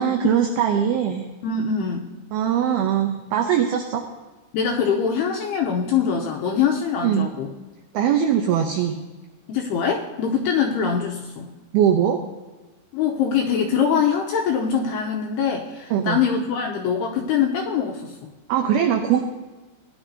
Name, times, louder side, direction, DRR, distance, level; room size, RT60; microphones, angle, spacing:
voice 1, 0.0-1.3 2.3-4.0 7.0-7.3 7.9-9.0 11.7-12.2 15.9-16.2 18.5-19.2, right 9 dB, 85° right, 4 dB, 2.1 m, -21 dB
voice 2, 1.4-2.1 4.5-7.5 9.5-11.5 12.9-18.3, left 7 dB, 80° left, 1 dB, 2.4 m, -23 dB
17.5 x 10.5 x 2.7 m, 1.2 s
omnidirectional pair, 5.4 m